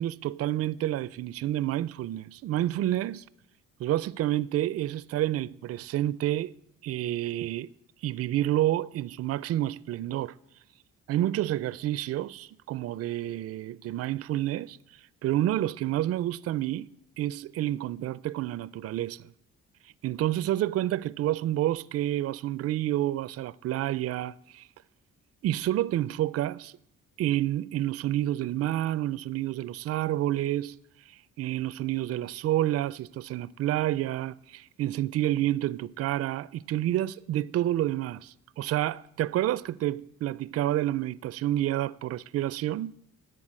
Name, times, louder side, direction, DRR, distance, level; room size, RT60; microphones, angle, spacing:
voice 1, 0.0-3.2 3.8-6.5 6.8-7.7 8.0-10.3 11.1-14.8 15.2-16.9 17.2-19.3 20.0-24.7 25.4-26.7 27.2-30.7 31.1-42.9, right 13 dB, 55° right, 0.4 m, -29 dB
11.0 x 7.4 x 7.6 m
cardioid pair, 90°, 30 cm